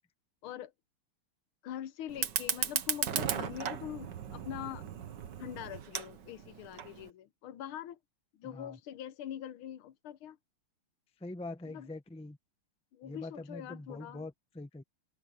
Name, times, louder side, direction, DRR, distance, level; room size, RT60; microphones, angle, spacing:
voice 1, 1.6-4.8 5.4-8.0 8.3-10.4 11.6-11.9 12.9-14.3, left 10 dB, 85° left, 1.7 m, -43 dB
Fire, 2.1-7.1, right 8 dB, 60° right, 1.8 m, -36 dB
voice 2, 8.4-8.8 11.2-12.4 13.0-14.8, left 2 dB, 5° left, 0.5 m, -44 dB
omnidirectional pair, 2.3 m